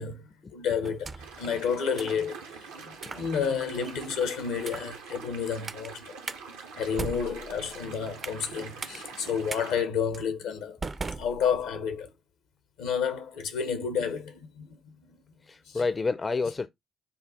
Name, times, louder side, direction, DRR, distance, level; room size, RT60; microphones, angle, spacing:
voice 1, 0.0-6.1 6.8-10.8 11.2-12.1 12.8-15.2 15.7-15.8, left 6 dB, 75° left, 0.8 m, -31 dB
sound 1, 0.8-1.4 2.0-2.2 3.0-3.3 3.8-4.1 4.6-5.0 5.7-5.9 6.3-6.4 6.8-8.5 8.8-9.0 9.5-9.6 10.1-10.3 10.8-11.9, right 3 dB, 35° right, 0.4 m, -38 dB
sound 2, 1.2-9.8, right 5 dB, 80° right, 0.8 m, -44 dB
voice 2, 8.5-9.3 15.4-16.7, left 4 dB, 35° left, 0.5 m, -31 dB
5.5 x 2.3 x 3.9 m
hypercardioid pair, 40°, 0 cm